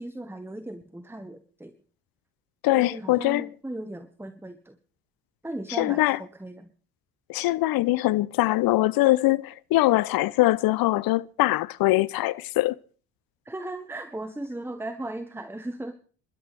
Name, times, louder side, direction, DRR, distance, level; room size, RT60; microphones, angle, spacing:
voice 1, 0.0-1.7 2.8-4.8 5.4-6.7 13.4-15.9, right 1 dB, 5° right, 1.4 m, -37 dB
voice 2, 2.6-3.5 5.8-6.2 7.3-12.8, left 18 dB, 55° left, 0.7 m, -22 dB
28.0 x 12.5 x 3.5 m
hypercardioid pair, 50°, 42 cm